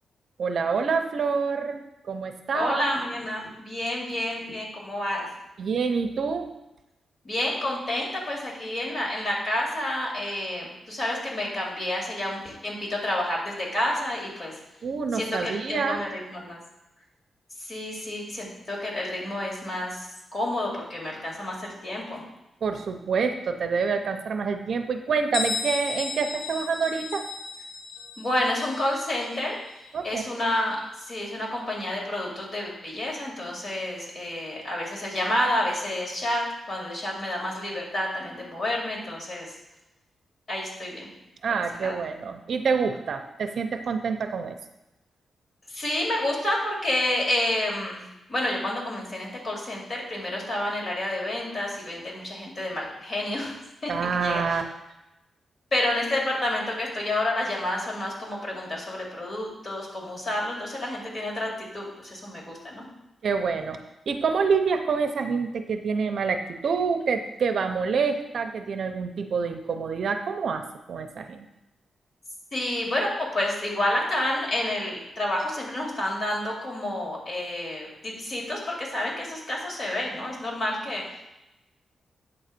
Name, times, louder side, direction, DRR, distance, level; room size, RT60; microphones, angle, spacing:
voice 1, 0.4-2.8 5.6-6.5 14.8-16.0 22.6-27.3 29.9-30.2 41.4-44.6 53.9-54.6 63.2-63.8 64.1-71.5, right 5 dB, 60° right, 6 dB, 0.7 m, -27 dB
voice 2, 2.5-5.3 7.2-14.5 15.1-16.6 17.6-22.2 28.2-29.6 30.0-30.8 31.1-39.5 40.5-41.1 41.8-42.0 45.7-48.0 48.3-53.5 53.8-54.6 55.7-62.9 72.5-81.2, left 1 dB, 40° left, -2 dB, 2.6 m, -29 dB
Bell, 25.3-30.8, left 5 dB, 80° left, 1.1 m, -35 dB
8.5 x 3.9 x 6.7 m, 0.93 s
wide cardioid pair, 140°, 0 cm